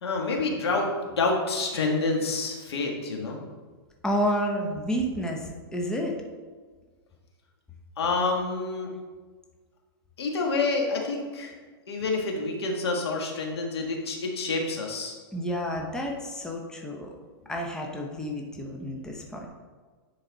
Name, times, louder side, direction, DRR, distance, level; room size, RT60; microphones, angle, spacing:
voice 1, 0.0-3.4 8.0-8.9 10.2-11.5 11.9-15.2, left 3 dB, 85° left, 1 dB, 1.6 m, -28 dB
voice 2, 4.0-6.1 15.3-17.2 17.5-19.5, equal, 5° left, 0 dB, 0.8 m, -30 dB
9.7 x 4.0 x 4.0 m, 1.4 s
hypercardioid pair, 140°, 13 cm